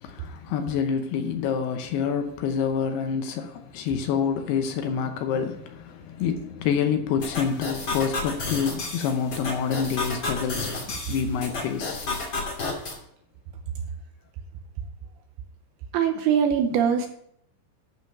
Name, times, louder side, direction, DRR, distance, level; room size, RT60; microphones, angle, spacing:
voice 1, 0.0-12.4, left 7 dB, 75° left, 2.6 m, -27 dB
sound 1, 7.2-13.0, left 3 dB, 35° left, 2.4 m, -32 dB
voice 2, 15.9-17.1, right 8 dB, 75° right, 2.5 m, -22 dB
11.5 x 5.1 x 6.6 m
omnidirectional pair, 5.1 m